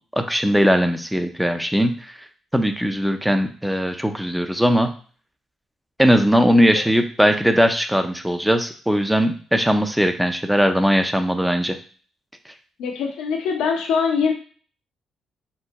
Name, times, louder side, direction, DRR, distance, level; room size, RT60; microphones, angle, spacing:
voice 1, 0.2-1.9 2.5-4.9 6.0-11.8, equal, ahead, 7 dB, 0.5 m, -19 dB
voice 2, 12.8-14.3, left 6 dB, 90° left, 2 dB, 0.8 m, -22 dB
4.4 x 2.1 x 4.1 m, 0.42 s
cardioid pair, 90°, 0 cm